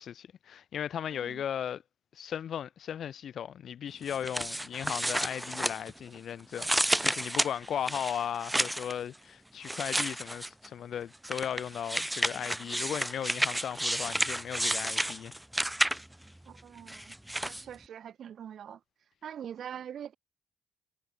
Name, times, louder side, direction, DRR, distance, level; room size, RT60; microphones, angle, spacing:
voice 1, 0.0-1.8 2.1-15.3, left 9 dB, 60° left, 1.3 m, -36 dB
voice 2, 1.1-1.4 16.5-17.1 17.4-18.8 19.2-20.2, right 9 dB, 60° right, 4.3 m, -43 dB
sound 1, 4.1-6.2 6.5-8.9 9.6-10.7 11.2-16.2 16.9-17.6, right 1 dB, 5° right, 0.6 m, -31 dB
cardioid pair, 110°, 0 cm